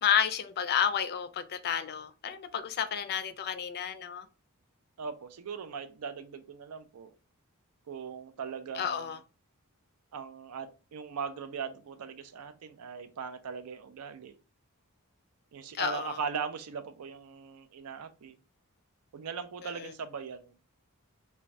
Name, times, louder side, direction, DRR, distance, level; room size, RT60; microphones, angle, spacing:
voice 1, 0.0-4.3 8.8-9.2 15.7-16.2 19.8-19.9, left 8 dB, 45° left, 0.3 m, -31 dB
voice 2, 5.0-7.1 7.9-9.2 10.1-14.4 15.5-18.4 19.1-20.6, right 6 dB, 85° right, 0.4 m, -39 dB
2.5 x 2.2 x 3.1 m
head